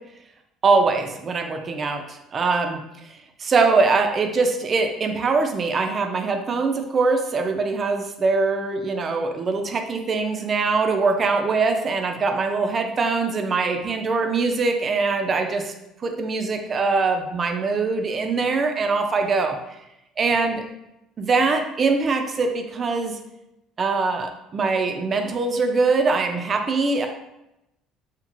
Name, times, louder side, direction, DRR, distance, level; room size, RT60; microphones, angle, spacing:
voice 1, 0.6-2.8 3.4-15.7 16.0-19.6 20.2-20.6 21.2-23.2 23.8-27.1, right 4 dB, 40° right, 5 dB, 0.4 m, -22 dB
2.9 x 2.8 x 2.5 m, 0.88 s
supercardioid pair, 80°, 0 cm